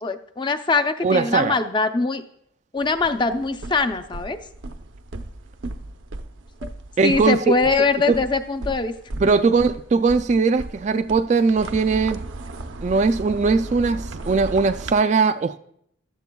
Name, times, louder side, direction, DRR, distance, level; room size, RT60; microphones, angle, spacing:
voice 1, 0.0-2.2 2.7-4.4 6.6-6.7 7.0-8.9, left 3 dB, 25° left, 0.5 m, -22 dB
voice 2, 1.0-1.6 7.0-7.4 8.1-8.2 9.2-12.2 12.8-15.6, right 4 dB, 35° right, 0.3 m, -20 dB
sound 1, 2.8-14.9, right 2 dB, 75° right, 0.7 m, -36 dB
15.0 x 12.5 x 2.3 m
head